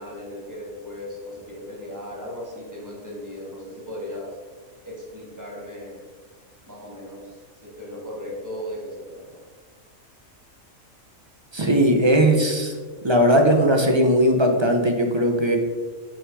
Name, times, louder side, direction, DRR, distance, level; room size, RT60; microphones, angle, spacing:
voice 1, 0.0-4.3 4.9-6.0 6.7-9.4, left 1 dB, 15° right, -4 dB, 1.8 m, -37 dB
voice 2, 11.5-12.7 13.0-15.6, equal, 35° right, 3 dB, 0.5 m, -18 dB
5.6 x 5.6 x 4.8 m, 1.5 s
omnidirectional pair, 1.4 m